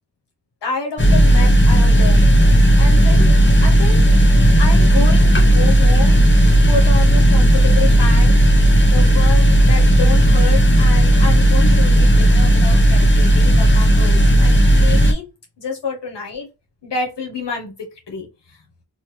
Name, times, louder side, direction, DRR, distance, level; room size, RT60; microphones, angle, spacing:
voice 1, 0.6-2.2 2.8-3.3 3.6-4.1 4.6-6.2 6.7-8.4 8.9-15.2 15.6-16.5 16.8-17.7 18.1-18.6, left 4 dB, 80° left, 0.9 m, -28 dB
sound 1, 1.0-15.1, right 1 dB, 30° left, 0.7 m, -12 dB
2.9 x 2.2 x 3.0 m
cardioid pair, 40°, 42 cm